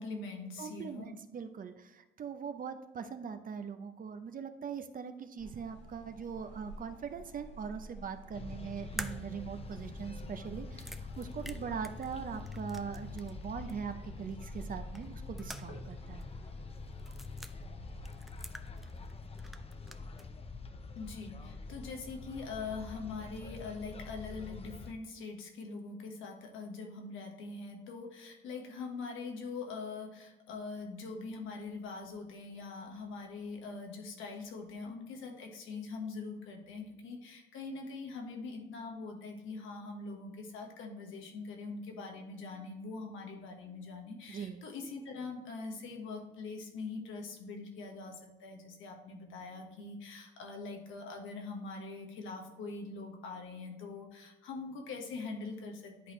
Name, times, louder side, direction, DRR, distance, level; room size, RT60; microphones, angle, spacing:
voice 1, 0.0-1.1 20.9-56.1, left 4 dB, 85° left, 2 dB, 1.4 m, -43 dB
voice 2, 0.6-16.2 44.3-44.6, right 6 dB, 45° right, 8 dB, 0.7 m, -41 dB
sound 1, 5.4-18.3, right 1 dB, 65° left, 1.9 m, -52 dB
sound 2, 8.3-24.9, left 3 dB, 30° left, 0.7 m, -45 dB
sound 3, 9.0-13.4 13.7-13.8 15.0-16.0 16.2-16.3 17.0-17.5 18.1-19.1 19.4-20.3, equal, ahead, 0.4 m, -47 dB
10.0 x 4.3 x 3.1 m, 1.0 s
cardioid pair, 90°, 20 cm